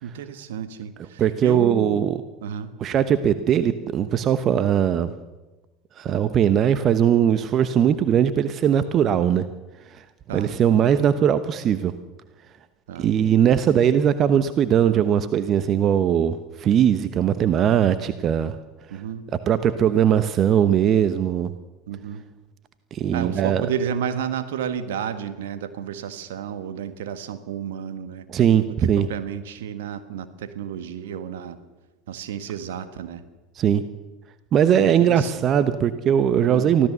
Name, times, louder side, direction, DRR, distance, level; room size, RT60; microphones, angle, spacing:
voice 1, 0.0-2.1 2.4-2.7 10.3-10.5 12.9-13.1 18.9-19.3 21.9-22.2 23.1-28.2 28.7-31.6 32.1-33.2 35.0-35.4 36.5-36.7, right 8 dB, 70° right, 10 dB, 1.6 m, -31 dB
voice 2, 1.2-2.2 2.8-5.1 6.0-9.4 9.9-10.0 10.3-11.9 13.0-18.6 18.9-19.0 19.5-21.5 22.9-23.7 28.3-29.1 33.5-33.8 34.5-36.9, right 9 dB, 40° right, 12 dB, 1.0 m, -20 dB
24.5 x 15.5 x 6.9 m, 1.1 s
figure-of-eight pair, 70°, 0 cm